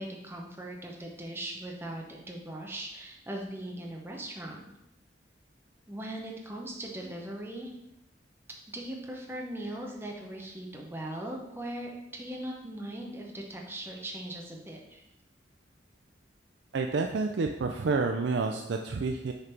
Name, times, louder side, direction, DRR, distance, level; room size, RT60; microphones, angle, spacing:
voice 1, 0.0-4.6 5.9-7.7 8.7-15.0, right 1 dB, 10° right, -1 dB, 0.8 m, -39 dB
voice 2, 16.7-19.3, right 4 dB, 70° right, 4 dB, 0.4 m, -29 dB
6.5 x 3.9 x 4.4 m, 0.87 s
head